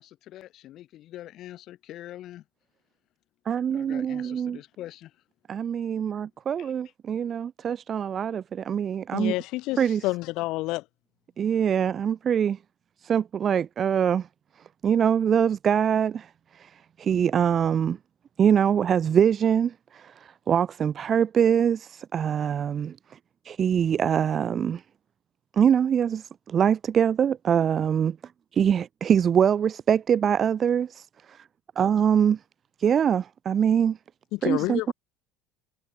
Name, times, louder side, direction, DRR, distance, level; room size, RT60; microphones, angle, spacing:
voice 1, 0.0-2.4 3.7-5.1 6.6-6.7, left 13 dB, 45° left, 3.9 m, -44 dB
voice 2, 3.5-4.6 5.5-9.3 9.8-10.1 11.4-12.6 13.0-14.3 14.8-18.0 18.4-23.2 23.4-24.8 25.5-28.2 28.5-31.5 31.8-32.4 32.8-34.0 34.4-34.9, right 8 dB, 30° right, 2.6 m, -24 dB
voice 3, 9.1-9.8 10.0-10.8 34.4-34.9, left 20 dB, 60° left, 2.6 m, -28 dB
cardioid pair, 160°, 0 cm